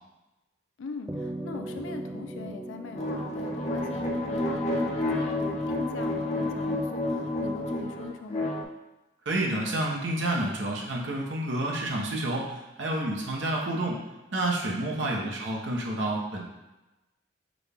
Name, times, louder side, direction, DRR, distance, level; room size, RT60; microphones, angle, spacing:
voice 1, 0.8-8.5 15.0-15.3, left 4 dB, 80° left, 6 dB, 0.4 m, -42 dB
sound 1, 1.1-5.7, right 1 dB, 15° right, 0.3 m, -40 dB
sound 2, 3.0-8.6, left 1 dB, 35° left, 0.6 m, -29 dB
voice 2, 9.3-14.0 14.3-16.4, right 1 dB, 75° right, -2 dB, 0.9 m, -29 dB
6.1 x 2.3 x 3.5 m, 1.0 s
head